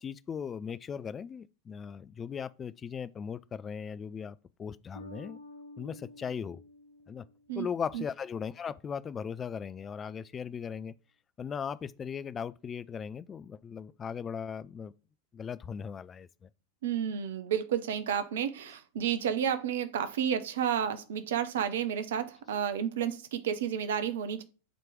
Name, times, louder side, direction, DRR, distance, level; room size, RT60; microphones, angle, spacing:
voice 1, 0.0-5.4 5.8-6.6 7.1-7.2 7.5-10.9 11.4-14.9 15.3-16.5, left 7 dB, 20° left, 0.3 m, -38 dB
Bass guitar, 5.0-8.0, left 1 dB, 85° left, 0.8 m, -50 dB
voice 2, 16.8-24.4, right 9 dB, 60° right, 0.6 m, -31 dB
7.6 x 3.0 x 4.9 m
figure-of-eight pair, 90°, 0 cm